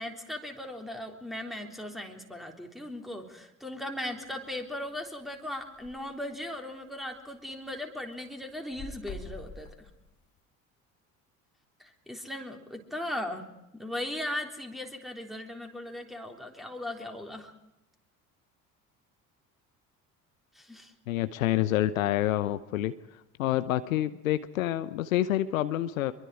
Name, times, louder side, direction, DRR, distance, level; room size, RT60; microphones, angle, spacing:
voice 1, 0.0-9.9 11.8-13.5 13.7-17.5 20.6-20.9, left 1 dB, ahead, 3 dB, 3.6 m, -38 dB
sound 1, 4.2-4.5 4.9-5.0 5.2-5.3 5.6-6.0 6.6-6.7 7.0-7.8 8.1-10.4, left 3 dB, 40° left, 2.2 m, -45 dB
voice 2, 21.1-22.9 23.4-26.1, left 13 dB, 65° left, 13 dB, 0.9 m, -27 dB
25.5 x 23.0 x 4.9 m, 0.90 s
figure-of-eight pair, 60°, 43 cm